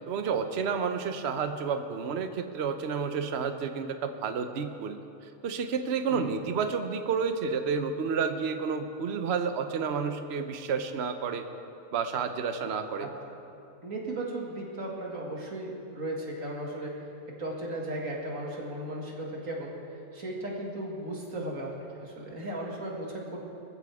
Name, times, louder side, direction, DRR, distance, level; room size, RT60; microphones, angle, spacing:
voice 1, 0.1-5.0 5.4-11.5 11.9-13.1, right 6 dB, 60° right, 7 dB, 1.0 m, -30 dB
voice 2, 13.0-13.4 13.8-23.4, right 1 dB, 85° right, -2 dB, 2.6 m, -36 dB
21.0 x 14.5 x 3.6 m, 2.7 s
omnidirectional pair, 1.4 m